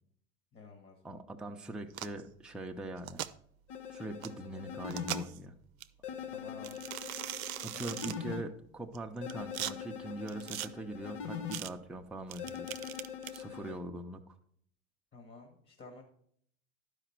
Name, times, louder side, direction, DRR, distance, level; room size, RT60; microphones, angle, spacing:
voice 1, 0.5-1.2 6.3-6.8 7.7-8.1 15.1-16.0, left 3 dB, 25° left, 3 dB, 1.6 m, -52 dB
voice 2, 1.0-3.2 3.9-5.5 7.6-12.7 13.3-14.4, right 2 dB, ahead, 2 dB, 0.7 m, -42 dB
sound 1, 1.9-2.2 3.0-3.3 4.2-4.3 4.9-5.4 5.8-5.9 6.6-8.2 8.9-9.7 10.3-10.7 11.5-11.7 12.3-13.4, right 12 dB, 90° right, 0.5 m, -40 dB
sound 2, 3.7-5.2 6.0-8.4 9.2-11.6 12.4-13.8, left 8 dB, 70° left, 1.3 m, -42 dB
11.5 x 5.2 x 4.5 m, 0.63 s
hypercardioid pair, 85°, 41 cm